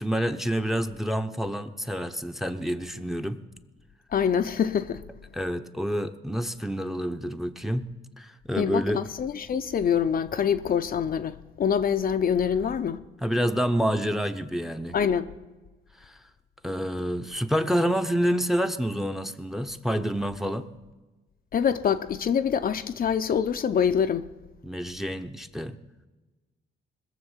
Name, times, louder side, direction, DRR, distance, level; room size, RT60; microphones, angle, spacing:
voice 1, 0.0-3.4 5.3-7.9 8.2-9.0 13.2-15.0 16.0-16.2 16.6-20.7 24.6-25.8, equal, ahead, 0.8 m, -28 dB
voice 2, 4.1-5.0 8.6-13.0 14.9-15.4 21.5-24.3, left 7 dB, 45° left, 0.6 m, -25 dB
20.5 x 7.0 x 7.2 m
cardioid pair, 90°, 20 cm